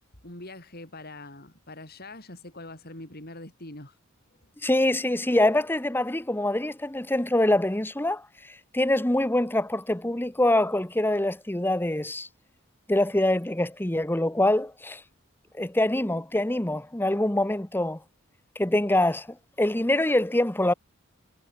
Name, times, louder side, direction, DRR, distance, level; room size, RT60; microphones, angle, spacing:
voice 1, 0.2-4.0 4.4-4.5, left 2 dB, 45° left, 6.7 m, -43 dB
voice 2, 4.6-12.3 12.9-15.0 15.5-18.0 18.6-20.7, left 1 dB, 10° left, 1.0 m, -25 dB
head